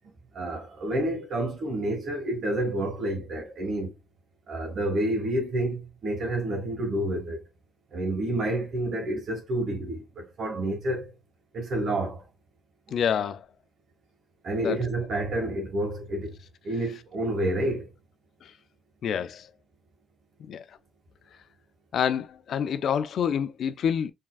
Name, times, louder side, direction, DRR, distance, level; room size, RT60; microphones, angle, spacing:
voice 1, 0.3-3.9 4.5-7.4 7.9-11.1 11.5-12.2 14.4-16.3 16.6-17.9, right 1 dB, 60° right, 1.9 m, -29 dB
voice 2, 12.9-13.5 14.6-14.8 18.4-18.5 19.0-19.5 20.5-20.6 21.9-24.1, left 8 dB, 65° left, 0.4 m, -27 dB
4.4 x 3.6 x 2.4 m
cardioid pair, 90°, 0 cm